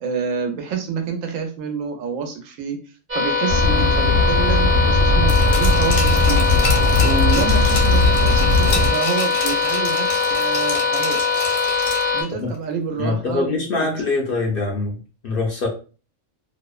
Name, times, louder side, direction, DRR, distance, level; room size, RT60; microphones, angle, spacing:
voice 1, 0.0-2.8 3.1-6.4 7.0-11.3 12.1-14.0, right 6 dB, 90° right, 4 dB, 1.0 m, -28 dB
sound 1, 3.1-12.2, left 4 dB, 15° right, 0.5 m, -21 dB
sound 2, 3.5-8.9, left 2 dB, 60° right, 0.7 m, -18 dB
Glass, 5.3-12.2 12.5-12.6, left 3 dB, 80° left, 1.0 m, -30 dB
voice 2, 13.0-15.7, left 3 dB, 60° left, 0 dB, 0.6 m, -24 dB
2.7 x 2.0 x 2.3 m, 0.36 s
omnidirectional pair, 1.3 m